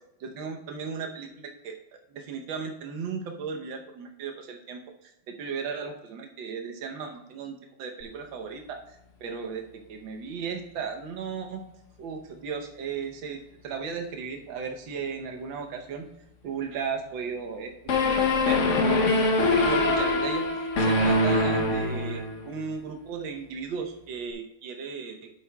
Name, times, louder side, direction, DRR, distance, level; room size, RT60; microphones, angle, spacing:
voice 1, 0.2-9.6 9.9-11.7 12.0-13.4 13.6-16.1 16.4-17.7 18.0-18.9 19.6-25.3, right 6 dB, 80° right, 3 dB, 1.7 m, -36 dB
sound 1, 17.9-22.5, left 2 dB, 50° left, 1.0 m, -23 dB
9.6 x 7.5 x 2.3 m, 0.85 s
omnidirectional pair, 2.1 m